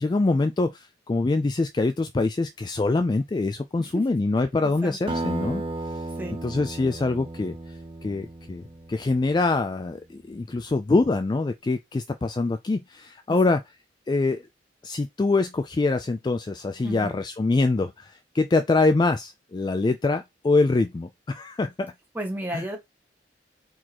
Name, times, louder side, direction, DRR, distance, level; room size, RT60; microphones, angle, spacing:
voice 1, 0.0-5.6 6.4-7.5 8.0-8.6 8.9-10.0 10.3-13.6 14.1-14.4 14.8-21.9 22.5-22.6, left 3 dB, 25° left, 0.3 m, -24 dB
voice 2, 4.6-5.2 6.2-6.4 13.3-13.6 16.8-17.2 22.1-22.8, right 1 dB, 10° right, 1.5 m, -34 dB
Acoustic guitar, 5.1-9.9, right 2 dB, 30° right, 0.6 m, -34 dB
4.7 x 3.9 x 2.9 m
head